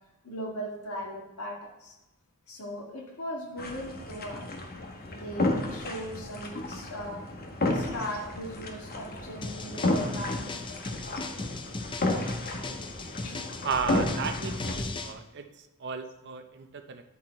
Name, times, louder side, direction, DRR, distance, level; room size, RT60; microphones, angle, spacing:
voice 1, 0.2-1.9 2.5-4.4 5.1-7.2 7.6-10.8 13.2-13.4, equal, 75° left, -1 dB, 1.6 m, -38 dB
sound 1, 3.6-14.8, left 2 dB, 45° left, 1.0 m, -32 dB
sound 2, 9.4-15.1, left 3 dB, 20° left, 0.5 m, -38 dB
voice 2, 13.6-17.0, right 5 dB, 55° right, 8 dB, 0.6 m, -34 dB
9.8 x 4.3 x 4.4 m, 0.98 s
head